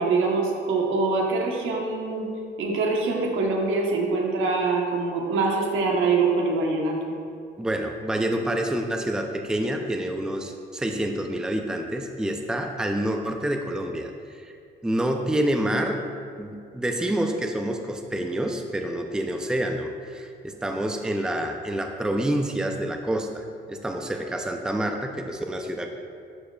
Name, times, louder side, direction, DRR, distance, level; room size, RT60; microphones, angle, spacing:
voice 1, 0.0-2.3 2.6-7.0, right 3 dB, 80° right, 0 dB, 1.1 m, -24 dB
voice 2, 7.6-14.5 14.8-16.0 16.4-25.9, right 1 dB, 5° right, 3 dB, 0.5 m, -28 dB
11.0 x 4.8 x 2.3 m, 2.3 s
cardioid pair, 90°, 20 cm